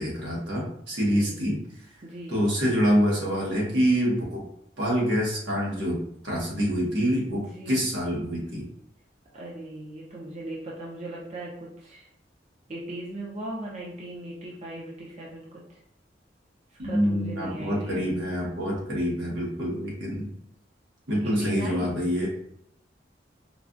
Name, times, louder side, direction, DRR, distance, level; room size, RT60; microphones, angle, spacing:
voice 1, 0.0-1.6 2.3-4.4 4.8-8.6 16.8-20.3 21.1-22.3, equal, 70° right, -4 dB, 1.4 m, -26 dB
voice 2, 1.0-1.4 2.0-2.4 7.5-7.8 9.3-12.1 12.7-15.8 16.7-18.1 21.2-22.1, right 1 dB, 40° right, -5 dB, 0.6 m, -38 dB
4.6 x 2.3 x 2.6 m, 0.74 s
head